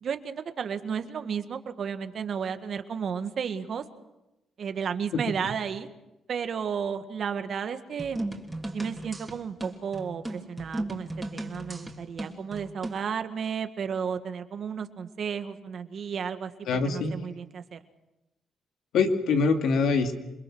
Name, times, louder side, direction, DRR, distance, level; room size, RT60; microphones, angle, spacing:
voice 1, 0.0-3.8 4.6-5.9 6.3-8.2 8.7-17.8, right 7 dB, 55° right, 8 dB, 1.7 m, -33 dB
sound 1, 8.0-13.1, right 1 dB, 15° right, 3.0 m, -36 dB
voice 2, 16.7-17.2 18.9-20.1, left 4 dB, 75° left, 4 dB, 2.5 m, -24 dB
27.5 x 21.5 x 6.2 m, 0.97 s
cardioid pair, 90°, 0 cm